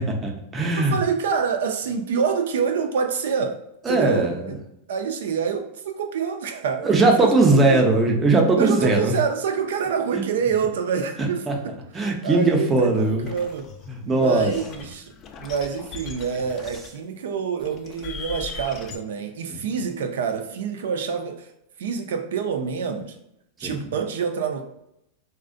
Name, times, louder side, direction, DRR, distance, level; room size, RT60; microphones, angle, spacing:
voice 1, 0.0-1.0 3.9-4.5 6.8-9.2 10.1-10.2 11.2-11.6 11.9-13.3 13.9-14.5 19.5-19.6 23.6-23.9, right 2 dB, 20° right, 1 dB, 0.5 m, -20 dB
voice 2, 0.9-3.5 3.9-4.3 4.9-6.9 7.2-7.3 7.7-7.9 8.6-11.4 11.9-13.7 14.0-15.1 15.4-21.5 21.8-23.1 23.6-24.6, right 6 dB, 75° right, 5 dB, 0.4 m, -26 dB
sound 1, 12.9-13.9 14.3-17.0 17.6-19.0, left 5 dB, 35° left, 0.3 m, -39 dB
2.4 x 2.1 x 2.5 m, 0.80 s
hypercardioid pair, 115°, 0 cm